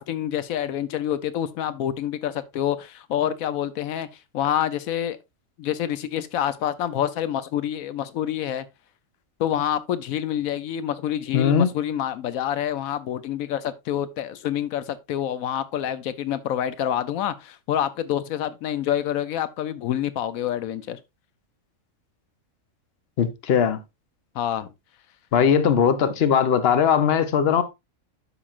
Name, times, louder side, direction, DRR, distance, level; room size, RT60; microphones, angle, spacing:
voice 1, 0.0-4.1 4.3-5.2 5.6-8.7 9.4-21.0 24.3-24.7, left 10 dB, 90° left, 1.1 m, -27 dB
voice 2, 11.3-11.7 23.2-23.8 25.3-27.6, left 7 dB, 50° left, 1.0 m, -19 dB
12.0 x 5.2 x 2.5 m
omnidirectional pair, 1.4 m